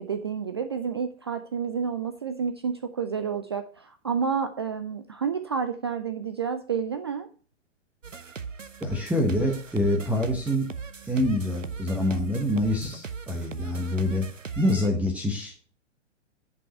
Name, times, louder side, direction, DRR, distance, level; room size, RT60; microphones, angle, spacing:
voice 1, 0.0-7.3, right 6 dB, 25° right, 9 dB, 0.3 m, -30 dB
sound 1, 8.0-14.9, right 5 dB, 80° right, 0.9 m, -39 dB
voice 2, 8.8-10.7 11.0-14.3 14.6-15.7, left 1 dB, 5° right, 1 dB, 0.9 m, -26 dB
9.8 x 5.4 x 5.5 m, 0.39 s
figure-of-eight pair, 115°, 37 cm